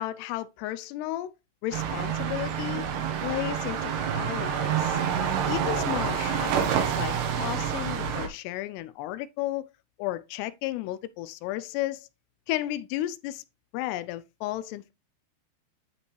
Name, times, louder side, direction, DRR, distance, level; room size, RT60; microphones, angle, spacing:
voice 1, 0.0-1.3 1.6-2.9 3.2-5.0 5.5-9.7 10.0-12.1 12.5-13.4 13.7-14.9, left 14 dB, 85° left, 2.6 m, -33 dB
sound 1, 1.7-8.3, right 8 dB, 75° right, 3.2 m, -28 dB
9.6 x 5.2 x 3.1 m
omnidirectional pair, 4.9 m